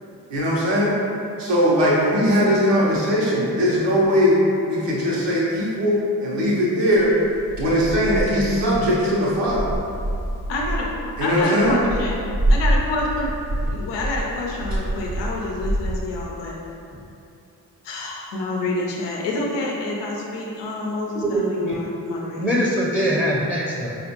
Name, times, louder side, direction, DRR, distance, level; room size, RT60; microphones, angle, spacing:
voice 1, 0.3-0.9 1.4-7.1 7.6-9.7 11.2-11.8, equal, 80° right, -6 dB, 0.9 m, -20 dB
sound 1, 6.9-16.0, right 1 dB, 40° right, 0.6 m, -26 dB
voice 2, 10.5-10.9 11.2-12.1 12.5-13.3 13.7-16.6 17.8-22.4, left 2 dB, 90° left, -2 dB, 0.6 m, -27 dB
voice 3, 21.2-21.8 22.4-24.0, equal, 5° left, -6 dB, 0.6 m, -22 dB
4.2 x 2.5 x 2.9 m, 2.6 s
supercardioid pair, 45°, 42 cm